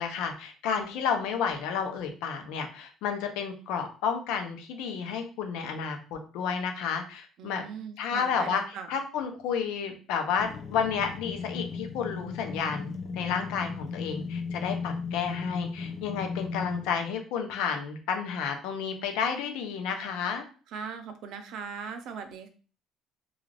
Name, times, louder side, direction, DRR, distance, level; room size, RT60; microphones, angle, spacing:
voice 1, 0.0-7.7 8.0-20.4, left 6 dB, 85° left, 5 dB, 0.6 m, -31 dB
voice 2, 7.4-8.9 20.7-22.5, right 6 dB, 65° right, 8 dB, 0.5 m, -39 dB
sound 1, 10.4-17.1, left 5 dB, 45° left, 0.4 m, -36 dB
2.4 x 2.4 x 3.2 m, 0.38 s
cardioid pair, 130°, 0 cm